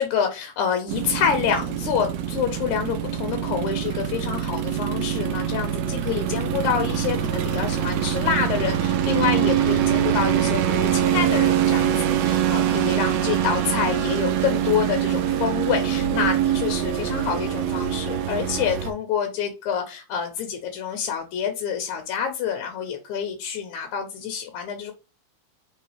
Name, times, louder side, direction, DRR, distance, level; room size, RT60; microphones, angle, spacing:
voice 1, 0.0-24.9, left 8 dB, 80° left, 5 dB, 2.0 m, -27 dB
sound 1, 0.9-18.9, right 10 dB, 75° right, 1.6 m, -24 dB
4.1 x 3.8 x 3.2 m, 0.30 s
omnidirectional pair, 3.5 m